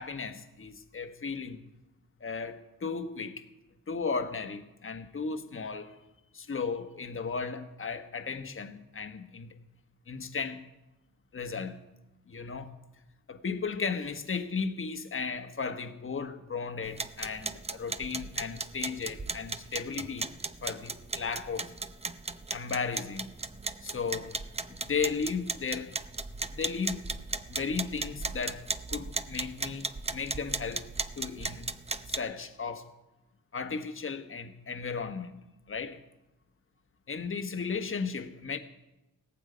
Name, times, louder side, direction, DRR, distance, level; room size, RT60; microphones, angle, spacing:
voice 1, 0.0-1.6 2.2-3.4 3.9-6.0 6.3-9.5 10.1-10.6 11.3-11.8 12.3-12.7 13.3-20.3 20.6-21.7 22.5-23.3 23.8-24.4 24.8-26.0 26.5-27.0 27.5-30.9 31.2-31.7 32.1-32.9 33.5-35.4 35.7-36.0 37.1-38.6, left 5 dB, 35° left, 1.3 m, -35 dB
sound 1, 16.8-32.2, right 3 dB, 20° right, 0.6 m, -37 dB
17.0 x 15.0 x 5.1 m
wide cardioid pair, 115°, 35 cm